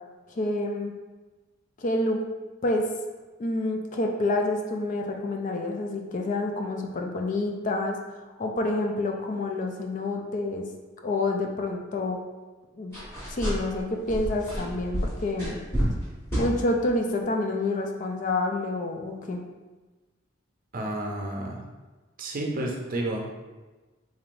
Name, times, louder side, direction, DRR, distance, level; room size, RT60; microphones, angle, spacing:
voice 1, 0.3-0.9 1.8-2.2 2.6-2.8 3.4-10.7 11.0-12.2 12.8-12.9 13.3-15.6 16.4-19.4, left 2 dB, 40° left, 2 dB, 0.4 m, -28 dB
sound 1, 12.9-13.8 14.1-16.0 16.3-16.5, equal, 15° left, 1.4 m, -29 dB
voice 2, 20.7-21.7 22.2-23.3, right 1 dB, 45° right, -1 dB, 0.6 m, -31 dB
3.8 x 3.2 x 2.5 m, 1.2 s
head